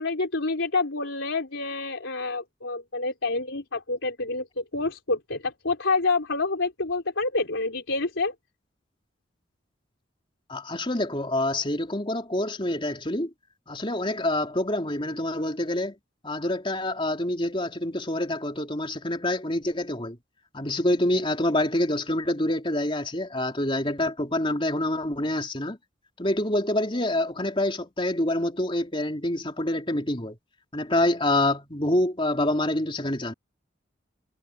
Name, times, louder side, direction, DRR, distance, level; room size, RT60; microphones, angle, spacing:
voice 1, 0.0-8.3, left 3 dB, 85° left, 3.9 m, -28 dB
voice 2, 10.5-13.3 13.7-15.9 16.2-20.2 20.5-25.8 26.2-30.4 30.7-33.3, left 1 dB, 25° left, 3.6 m, -26 dB
head